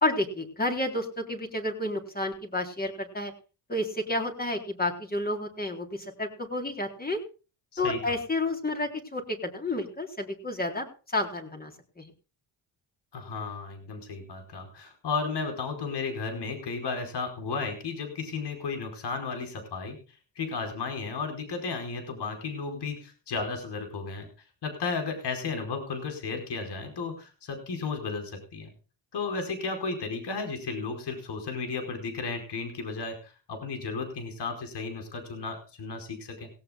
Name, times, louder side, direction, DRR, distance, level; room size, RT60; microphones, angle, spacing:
voice 1, 0.0-3.3 3.7-7.2 7.8-10.9 11.1-11.7 12.0-12.1, left 1 dB, 20° left, 3 dB, 4.0 m, -30 dB
voice 2, 13.1-20.0 20.3-24.3 24.6-28.7 29.1-36.5, left 4 dB, 60° left, 5 dB, 4.9 m, -34 dB
17.5 x 17.5 x 2.4 m, 0.35 s
cardioid pair, 95°, 46 cm